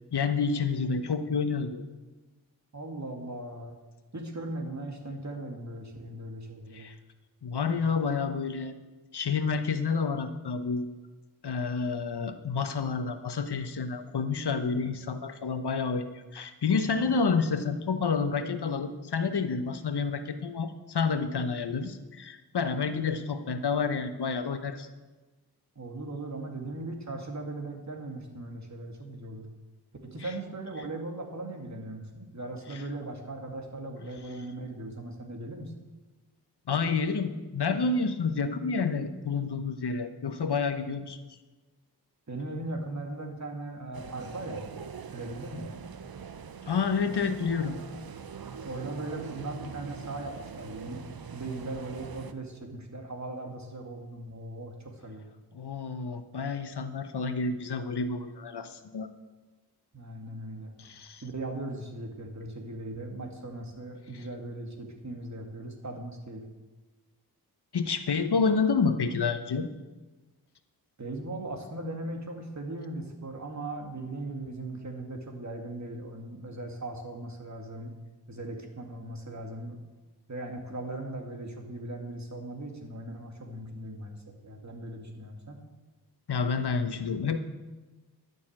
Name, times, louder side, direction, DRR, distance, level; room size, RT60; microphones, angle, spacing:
voice 1, 0.1-1.8 6.7-6.9 7.4-8.8 9.1-10.9 11.4-24.9 30.2-30.3 32.7-32.8 36.7-41.2 46.7-47.8 55.5-59.1 60.8-61.2 64.1-64.2 67.7-69.7 86.3-87.4, left 5 dB, 75° left, 10 dB, 1.0 m, -29 dB
voice 2, 2.7-3.8 4.1-6.9 25.8-29.5 30.0-35.7 42.3-44.7 45.1-45.7 48.6-55.3 59.9-60.7 61.2-66.5 71.0-77.9 78.3-79.8 80.3-85.6, right 2 dB, 45° right, 3 dB, 2.3 m, -38 dB
sound 1, 43.9-52.3, right 6 dB, 60° right, 0.8 m, -43 dB
12.0 x 6.7 x 8.8 m, 1.2 s
wide cardioid pair, 65°, 40 cm